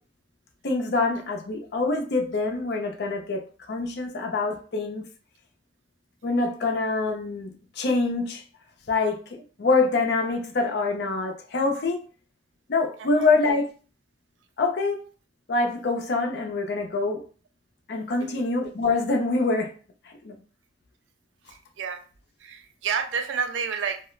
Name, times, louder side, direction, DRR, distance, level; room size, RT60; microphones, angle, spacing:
voice 1, 0.6-5.0 6.2-8.4 8.9-12.0 12.7-13.7 14.6-15.0 15.5-17.2 17.9-19.7 20.1-20.4, left 3 dB, 60° left, 3 dB, 0.5 m, -25 dB
voice 2, 21.5-22.0 22.4-24.0, right 6 dB, 85° right, 8 dB, 0.4 m, -30 dB
2.3 x 2.0 x 3.1 m, 0.39 s
head